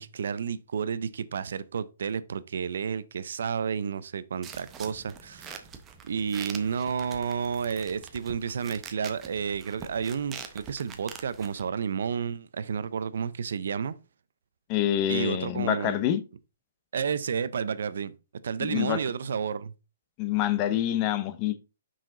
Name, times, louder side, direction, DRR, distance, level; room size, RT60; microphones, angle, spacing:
voice 1, 0.0-5.6 6.1-14.0 15.1-16.0 16.9-18.1 18.4-19.7, right 6 dB, 70° right, 0.5 m, -31 dB
sound 1, 4.4-11.6, right 7 dB, 15° right, 0.7 m, -45 dB
voice 2, 14.7-16.2 18.6-19.0 20.2-21.6, left 11 dB, 25° left, 0.5 m, -26 dB
5.7 x 5.0 x 3.8 m
hypercardioid pair, 165°, 0 cm